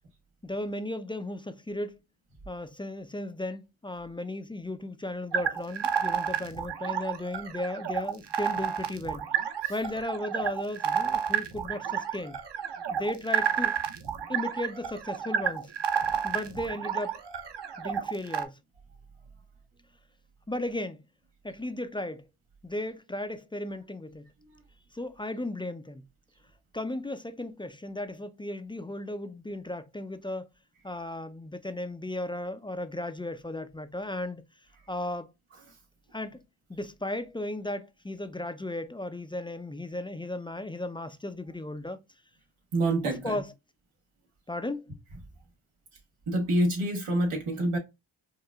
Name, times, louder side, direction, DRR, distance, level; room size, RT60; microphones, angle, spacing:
voice 1, 0.4-2.0 2.5-9.3 9.7-12.4 12.9-13.8 14.3-15.7 16.2-17.2 17.8-18.6 20.5-21.0 21.4-22.3 22.6-24.2 24.9-26.0 26.7-30.5 30.8-34.4 34.9-35.3 36.1-36.4 36.7-42.0 43.0-43.5 44.5-44.9, left 1 dB, 10° left, 0.3 m, -35 dB
sound 1, 5.3-18.5, right 8 dB, 55° right, 0.8 m, -30 dB
voice 2, 42.7-43.4 46.3-47.8, right 1 dB, 85° right, 1.3 m, -27 dB
4.7 x 2.3 x 2.3 m
cardioid pair, 40°, 50 cm